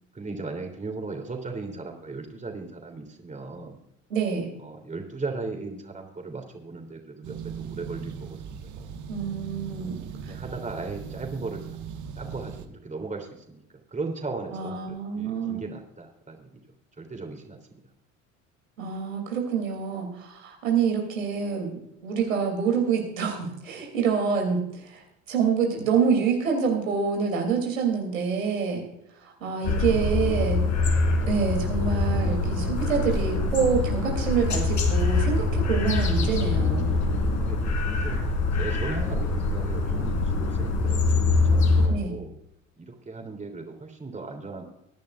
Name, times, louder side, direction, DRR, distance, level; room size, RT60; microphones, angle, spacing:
voice 1, 0.1-3.8 4.6-9.0 10.3-11.6 12.2-13.6 13.9-16.6 17.0-17.6 29.4-29.7 37.3-38.2 38.5-42.3 42.8-44.7, right 3 dB, 20° right, 3 dB, 3.2 m, -37 dB
voice 2, 4.1-4.5 9.1-10.0 10.2-10.3 14.5-15.7 18.8-21.7 22.0-25.0 25.3-28.8 29.2-30.6 31.2-36.9 41.9-42.2, right 6 dB, 85° right, 1 dB, 3.0 m, -26 dB
sound 1, 7.2-12.7, right 7 dB, 50° right, 1.5 m, -39 dB
sound 2, 29.6-41.9, left 3 dB, 45° left, 4.0 m, -24 dB
22.0 x 10.5 x 2.5 m, 0.80 s
hypercardioid pair, 70°, 38 cm